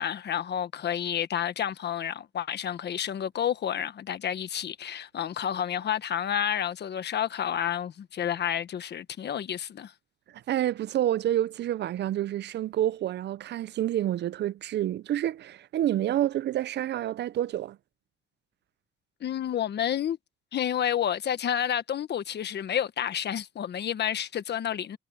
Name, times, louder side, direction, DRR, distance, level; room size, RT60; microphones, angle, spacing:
voice 1, 0.0-9.9 19.2-20.2 20.5-25.0, left 9 dB, 60° left, 1.4 m, -30 dB
voice 2, 10.3-17.8, right 12 dB, 60° right, 0.5 m, -28 dB
cardioid pair, 90°, 20 cm